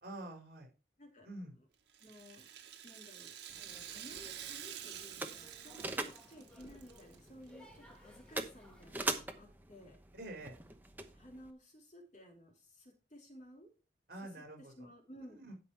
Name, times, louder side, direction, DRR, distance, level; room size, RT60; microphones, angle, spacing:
voice 1, 0.0-0.7 1.2-1.5 10.1-10.6 14.1-14.9 15.3-15.5, right 1 dB, 55° right, 2 dB, 4.7 m, -47 dB
Rattle (instrument), 1.9-7.2 7.5-7.6 8.4-8.5, right 10 dB, 80° right, 1.4 m, -48 dB
voice 2, 2.0-2.5 2.8-10.0 11.1-13.7 14.2-15.4, equal, 40° left, 1 dB, 2.9 m, -56 dB
sound 1, 3.5-9.2, equal, 5° left, 2.2 m, -62 dB
sound 2, 3.5-11.5, right 2 dB, 10° right, 1.0 m, -44 dB
12.0 x 5.9 x 4.6 m, 0.32 s
head